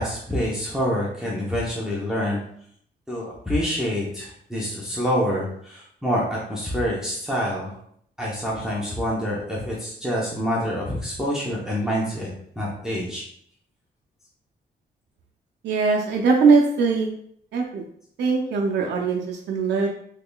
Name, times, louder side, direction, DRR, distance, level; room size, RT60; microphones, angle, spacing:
voice 1, 0.0-2.4 3.1-7.7 8.2-12.3 12.6-13.2, equal, 5° right, -6 dB, 0.7 m, -26 dB
voice 2, 15.6-17.1 17.5-17.8 18.2-19.9, right 4 dB, 85° right, 0 dB, 0.5 m, -21 dB
3.6 x 3.1 x 2.2 m, 0.66 s
wide cardioid pair, 125°, 18 cm